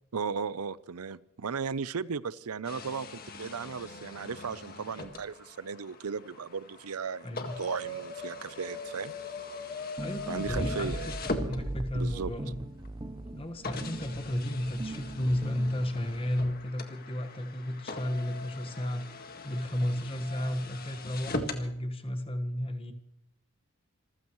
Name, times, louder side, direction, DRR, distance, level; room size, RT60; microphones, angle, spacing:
voice 1, 0.1-9.1 10.3-11.1 11.9-12.3, right 5 dB, 85° right, 18 dB, 0.6 m, -36 dB
sound 1, 2.6-12.1 12.8-12.9 13.6-21.7, left 2 dB, 40° left, 1.8 m, -41 dB
voice 2, 7.2-7.5 10.0-12.6 13.3-19.0 19.4-22.9, left 1 dB, 25° left, 7 dB, 1.5 m, -33 dB
sound 2, 10.0-16.2, right 1 dB, 20° right, 0.6 m, -38 dB
27.0 x 15.0 x 3.1 m, 0.75 s
head